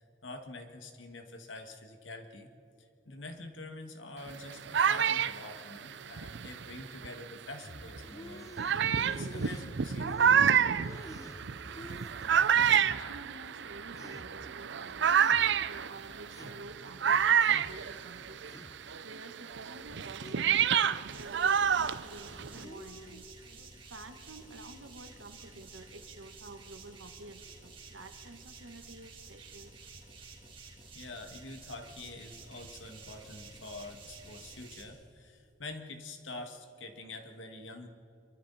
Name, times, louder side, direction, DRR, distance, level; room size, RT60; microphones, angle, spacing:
voice 1, 0.0-2.5 2.8-10.7 30.9-37.9, left 2 dB, 75° left, 5 dB, 2.1 m, -46 dB
sound 1, 4.3-7.3 8.0-8.1 8.6-18.6 18.9-22.6, right 8 dB, 65° right, 0.6 m, -28 dB
sound 2, 7.6-13.3 13.7-17.9 18.2-18.9 19.4-21.4 21.6-22.0 22.3-23.7, left 1 dB, 20° left, 1.1 m, -50 dB
voice 2, 12.5-18.4 19.0-23.4 23.8-29.7, right 2 dB, 85° right, 7 dB, 1.6 m, -50 dB
sound 3, 21.1-34.8, right 3 dB, 30° right, 3.3 m, -51 dB
27.0 x 23.5 x 4.3 m, 2.8 s
head